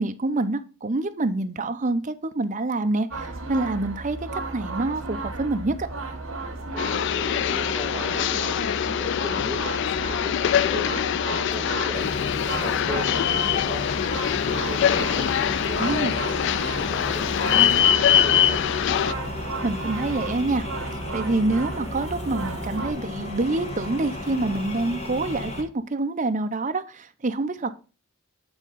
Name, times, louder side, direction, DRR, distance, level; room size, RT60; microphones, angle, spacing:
voice 1, 0.0-5.9 15.8-16.1 19.6-20.6 21.1-27.7, right 2 dB, 35° right, 0.7 m, -26 dB
sound 1, 3.1-22.9, right 3 dB, 70° right, 1.8 m, -34 dB
voice 2, 6.7-9.8 10.1-13.8 14.4-17.4 17.7-18.6, left 1 dB, 5° left, 2.0 m, -37 dB
sound 2, 6.8-19.1, left 9 dB, 60° left, 0.3 m, -23 dB
sound 3, 11.9-25.6, left 2 dB, 35° left, 1.5 m, -34 dB
8.8 x 3.6 x 5.6 m
head